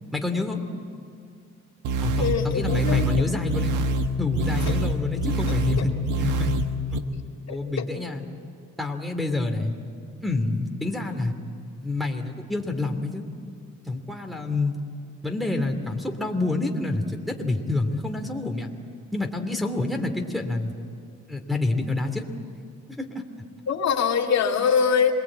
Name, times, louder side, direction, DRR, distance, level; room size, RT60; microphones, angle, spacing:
voice 1, 0.1-0.6 2.0-3.7 4.2-6.5 6.9-7.0 7.5-8.2 8.8-9.7 10.2-11.3 11.8-13.3 13.9-14.8 15.2-18.7 19.1-20.7 21.3-22.2 23.0-23.2, left 2 dB, ahead, 2 dB, 2.8 m, -27 dB
sound 1, 1.8-7.0, equal, 85° right, 1.5 m, -25 dB
voice 2, 2.2-3.2 4.7-4.8 7.5-7.8 23.7-25.1, left 6 dB, 60° left, 2 dB, 2.3 m, -23 dB
27.0 x 20.5 x 8.8 m, 2.4 s
cardioid pair, 90°, 30 cm